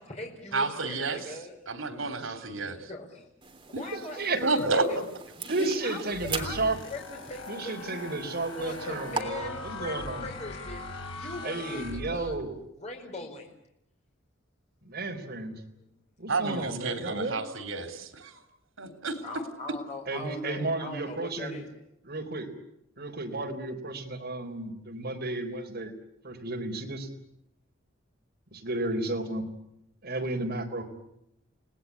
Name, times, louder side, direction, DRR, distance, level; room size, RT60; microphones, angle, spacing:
voice 1, 0.0-1.6 2.6-3.2 3.7-5.0 5.4-8.2 8.5-10.8 11.1-12.4 12.7-13.5 15.7-15.9 19.2-21.7, left 2 dB, 35° left, 1 dB, 4.8 m, -41 dB
voice 2, 0.5-1.2 1.7-2.8 4.4-4.8 16.3-18.4 18.8-19.2, right 3 dB, 90° right, 8 dB, 3.5 m, -30 dB
sound 1, 3.4-9.2, right 4 dB, 25° right, 3.2 m, -41 dB
voice 3, 3.9-4.4 5.5-6.8 7.5-10.3 11.4-12.6 14.8-15.5 16.2-17.4 20.1-21.6 22.0-22.5 23.0-25.9 26.2-27.1 28.5-29.4 30.0-30.9, right 2 dB, 55° right, 2 dB, 4.1 m, -33 dB
sound 2, 6.1-12.6, left 2 dB, 75° left, 4.0 m, -41 dB
29.5 x 19.0 x 8.6 m, 0.80 s
head